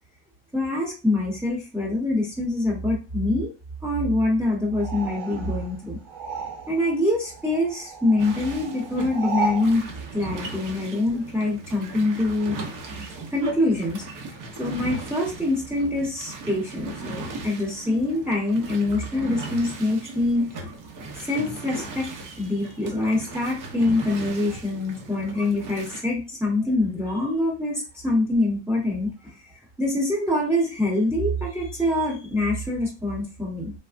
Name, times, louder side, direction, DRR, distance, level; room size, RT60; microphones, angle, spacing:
voice 1, 0.5-3.5 3.8-6.0 6.7-9.8 10.1-12.6 13.3-14.0 14.5-20.5 21.2-29.5 29.8-33.7, left 2 dB, 5° right, -3 dB, 0.9 m, -25 dB
sound 1, 4.7-7.0 7.2-9.7, right 4 dB, 75° right, 1.4 m, -33 dB
sound 2, 8.2-26.0, right 3 dB, 45° right, 0.7 m, -37 dB
3.3 x 2.0 x 2.5 m, 0.32 s
cardioid pair, 125°, 45 cm